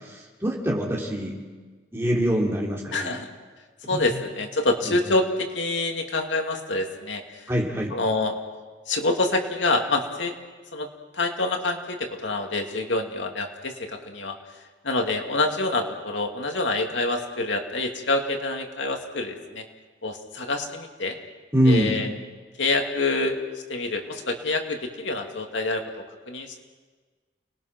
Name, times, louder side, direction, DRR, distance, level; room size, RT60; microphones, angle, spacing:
voice 1, 0.4-1.3 1.9-3.2 3.9-4.0 4.9-5.0 7.5-7.9 21.5-22.0, equal, 15° right, -2 dB, 3.5 m, -23 dB
voice 2, 2.9-3.3 3.9-7.5 7.9-8.3 8.9-10.3 10.7-10.9 11.1-14.4 14.8-19.6 20.0-21.2 21.6-22.1 22.6-23.4 23.7-25.8 26.3-26.6, left 2 dB, 80° left, 3 dB, 2.4 m, -26 dB
30.0 x 20.0 x 6.0 m, 1.4 s
head